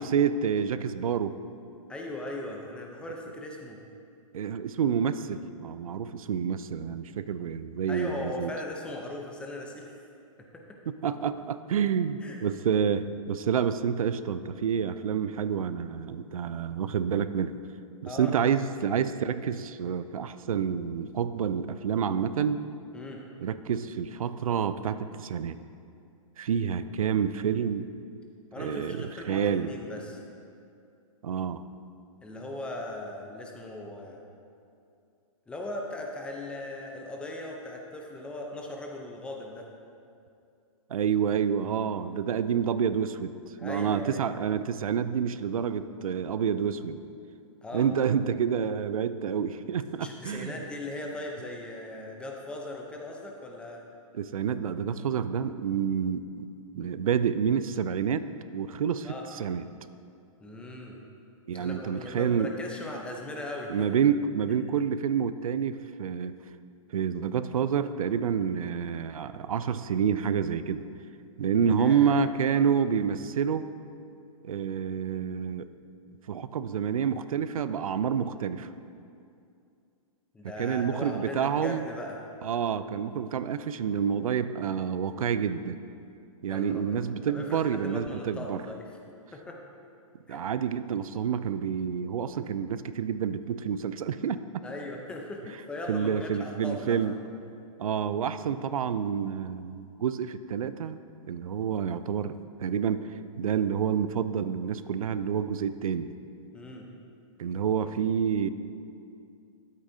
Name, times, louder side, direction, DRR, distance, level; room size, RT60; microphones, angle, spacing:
voice 1, 0.0-1.4 4.3-8.5 10.9-17.5 18.0-22.6 23.4-25.6 26.4-27.9 28.6-29.7 31.2-31.6 40.9-43.3 43.6-47.0 47.7-50.5 54.1-56.5 56.7-58.3 58.5-59.6 61.5-62.5 63.7-66.3 66.9-70.8 71.4-73.7 74.4-75.7 76.3-78.7 80.6-81.9 82.4-85.8 86.4-88.6 90.3-94.4 95.9-97.2 97.8-101.0 101.3-102.3 102.6-103.1 103.4-106.1 107.4-108.5, right 7 dB, 90° right, 13 dB, 0.5 m, -28 dB
voice 2, 1.9-3.8 7.9-10.0 10.5-10.8 12.2-12.4 18.1-18.3 22.9-23.2 28.5-30.2 32.2-34.2 35.5-39.7 43.6-44.3 47.6-47.9 50.0-53.8 59.0-59.2 60.4-61.0 61.5-63.9 71.8-72.1 72.5-72.6 80.3-82.2 86.5-87.0 87.3-88.9 89.3-89.6 90.3-90.4 94.6-97.0 106.5-106.9, left 1 dB, 5° left, 0 dB, 0.7 m, -39 dB
12.5 x 8.1 x 2.8 m, 2.5 s
hypercardioid pair, 155°, 17 cm